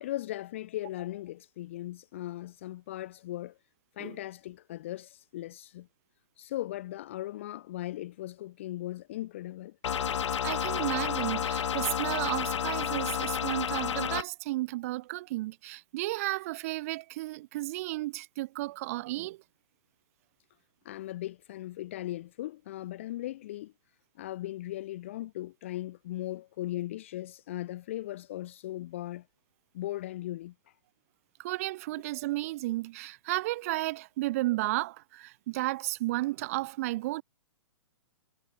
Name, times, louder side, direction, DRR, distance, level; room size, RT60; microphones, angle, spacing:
voice 1, 0.0-3.6 4.0-5.9 6.4-9.8 20.9-23.7 24.2-29.3 29.7-30.5, left 15 dB, 25° left, 0.4 m, -38 dB
sound 1, 9.8-14.2, left 8 dB, 85° left, 0.8 m, -31 dB
voice 2, 10.1-19.4 31.4-37.2, right 18 dB, 30° right, 1.3 m, -33 dB
hypercardioid pair, 170°, 15 cm